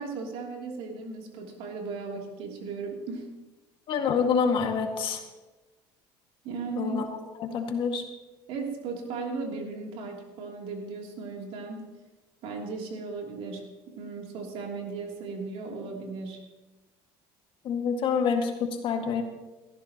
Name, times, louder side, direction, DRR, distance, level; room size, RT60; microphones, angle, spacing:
voice 1, 0.0-3.3 6.4-7.0 8.5-11.9 12.4-16.5, right 4 dB, 70° right, 0 dB, 3.0 m, -36 dB
voice 2, 3.9-5.2 6.8-7.0 7.4-8.0 17.6-19.2, left 6 dB, 55° left, 4 dB, 1.9 m, -27 dB
17.0 x 14.0 x 3.0 m, 1.1 s
supercardioid pair, 100°, 10 cm